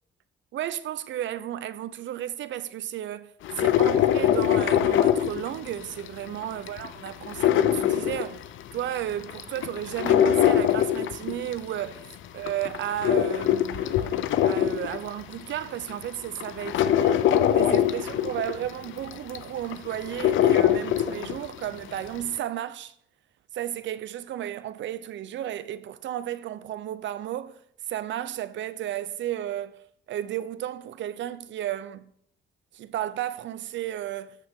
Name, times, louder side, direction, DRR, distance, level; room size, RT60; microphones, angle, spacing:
voice 1, 0.5-3.3 3.6-8.4 8.7-12.0 12.3-17.2 17.5-22.9 23.5-27.5 27.9-29.8 30.1-32.1 32.7-34.4, right 12 dB, 70° right, 0.6 m, -33 dB
sound 1, 3.4-6.1 6.4-8.8 9.2-11.8 12.3-15.3 15.9-16.0 16.4-21.6 21.9-22.0, left 10 dB, 75° left, 0.6 m, -23 dB
13.5 x 5.8 x 3.7 m
cardioid pair, 90°, 20 cm